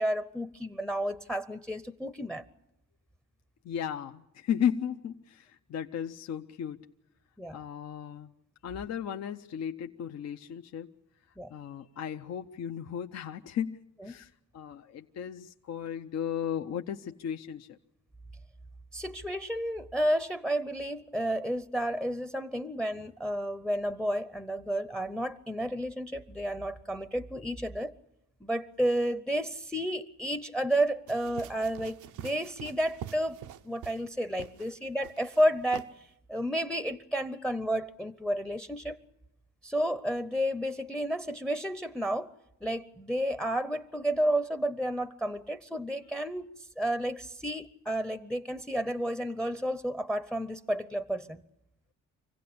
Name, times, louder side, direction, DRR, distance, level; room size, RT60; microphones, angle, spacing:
voice 1, 0.0-2.5 7.4-7.6 11.4-11.5 14.0-14.1 18.9-27.9 28.4-35.9 36.3-39.0 39.6-42.3 42.6-46.5 46.8-51.4, equal, ahead, 0.7 m, -31 dB
voice 2, 3.6-6.8 7.5-8.3 8.6-10.9 11.5-17.8, left 8 dB, 60° left, 0.8 m, -35 dB
sound 1, 31.1-34.1 34.4-34.7 35.0-35.4 35.7-35.9, right 10 dB, 80° right, 0.8 m, -44 dB
25.5 x 16.5 x 8.6 m
cardioid pair, 90°, 30 cm